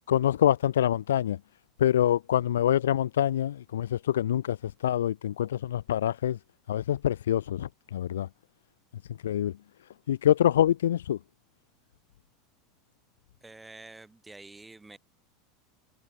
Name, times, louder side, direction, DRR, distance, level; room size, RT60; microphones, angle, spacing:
voice 1, 0.1-1.4 1.8-6.4 6.7-8.3 9.1-9.6 10.1-11.2, left 11 dB, 75° left, 0.3 m, -25 dB
voice 2, 13.4-15.0, right 2 dB, 10° right, 6.1 m, -48 dB
hypercardioid pair, 85°, 0 cm